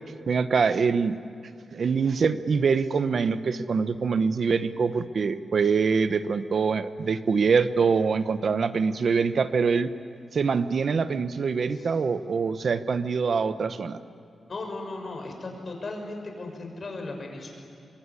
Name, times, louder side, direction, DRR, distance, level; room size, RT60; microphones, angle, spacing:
voice 1, 0.3-1.2 1.7-9.9 10.3-14.0, right 5 dB, 60° right, 11 dB, 1.0 m, -24 dB
voice 2, 14.5-17.5, left 2 dB, 45° left, 3 dB, 6.5 m, -36 dB
24.5 x 23.5 x 9.9 m, 2.7 s
wide cardioid pair, 100°, 0 cm